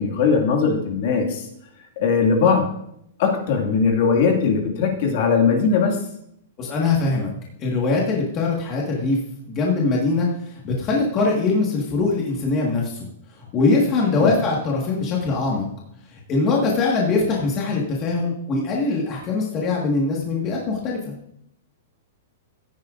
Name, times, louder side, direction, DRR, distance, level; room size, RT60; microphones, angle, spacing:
voice 1, 0.0-1.4 2.0-2.8 3.2-6.0 14.2-14.3, left 5 dB, 40° left, 2 dB, 2.1 m, -19 dB
voice 2, 6.6-7.3 7.6-9.2 9.5-13.1 13.4-15.7 16.1-21.1, left 3 dB, 20° left, -3 dB, 1.7 m, -22 dB
15.0 x 10.0 x 2.6 m, 0.73 s
supercardioid pair, 180°, 0 cm